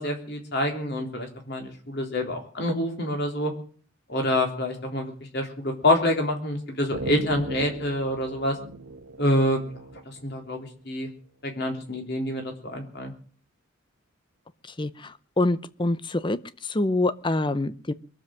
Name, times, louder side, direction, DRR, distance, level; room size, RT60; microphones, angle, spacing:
voice 1, 0.0-3.5 4.1-8.6 9.2-9.6 10.1-11.1 11.4-13.1, left 1 dB, 50° left, 3 dB, 3.6 m, -27 dB
sound 1, 6.9-10.5, right 2 dB, 80° right, 1.4 m, -37 dB
voice 2, 14.8-16.4 16.7-17.9, left 2 dB, 20° left, 15 dB, 0.6 m, -25 dB
22.5 x 7.5 x 7.7 m, 0.43 s
head